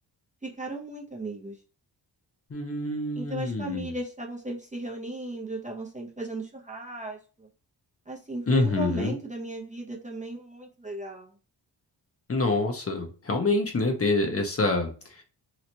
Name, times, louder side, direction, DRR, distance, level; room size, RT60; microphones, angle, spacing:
voice 1, 0.4-1.6 3.1-7.5 8.1-11.3, right 2 dB, 15° right, -1 dB, 0.6 m, -36 dB
voice 2, 2.5-3.9 8.5-9.1 12.3-14.9, left 2 dB, 30° left, 3 dB, 0.8 m, -26 dB
3.2 x 3.0 x 2.7 m, 0.36 s
wide cardioid pair, 130°, 44 cm